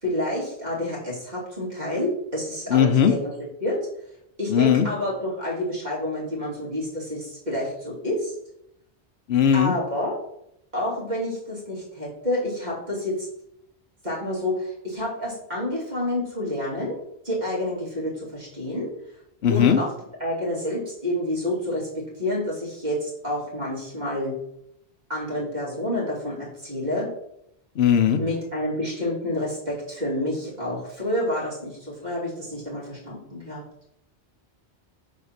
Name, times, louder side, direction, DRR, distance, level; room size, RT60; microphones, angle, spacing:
voice 1, 0.0-3.3 3.6-3.8 4.4-8.3 9.5-10.1 10.7-13.3 14.0-17.0 17.2-18.9 19.5-19.9 20.2-24.4 25.1-27.1 28.2-33.6, left 1 dB, 40° right, -6 dB, 2.8 m, -28 dB
voice 2, 2.7-3.1 4.5-4.9 9.3-9.7 19.4-19.8 27.8-28.2, left 8 dB, 75° left, 8 dB, 1.0 m, -18 dB
6.5 x 4.2 x 5.9 m, 0.77 s
omnidirectional pair, 1.1 m